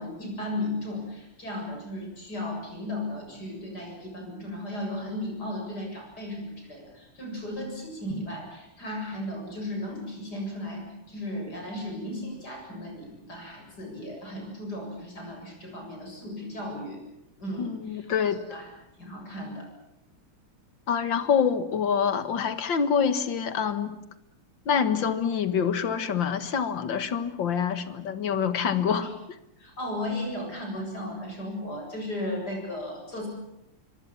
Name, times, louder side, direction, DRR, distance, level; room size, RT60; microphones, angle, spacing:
voice 1, 0.0-17.0 17.4-18.1 18.5-18.7 19.0-19.7 28.9-29.1 29.6-33.3, left 1 dB, 45° left, 1 dB, 8.2 m, -35 dB
voice 2, 17.6-18.4 20.9-24.0 24.7-29.1, left 7 dB, 65° left, 12 dB, 2.2 m, -26 dB
25.0 x 24.5 x 7.3 m, 0.86 s
omnidirectional pair, 2.3 m